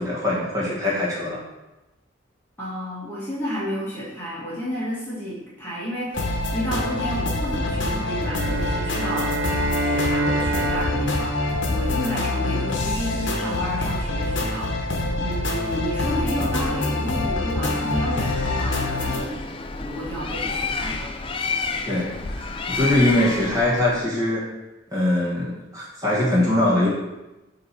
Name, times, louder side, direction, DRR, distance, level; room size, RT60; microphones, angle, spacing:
voice 1, 0.0-1.4 21.9-22.1 22.4-24.4 24.9-26.9, left 1 dB, 20° right, -7 dB, 1.6 m, -22 dB
voice 2, 2.6-21.1, equal, 10° left, -7 dB, 1.4 m, -31 dB
sound 1, 6.1-19.2, left 2 dB, 75° left, 0.9 m, -25 dB
sound 2, 8.2-12.6, right 2 dB, 85° right, 0.5 m, -29 dB
Bird, 18.0-24.0, left 4 dB, 30° left, 0.4 m, -30 dB
7.4 x 3.0 x 4.5 m, 1.0 s
head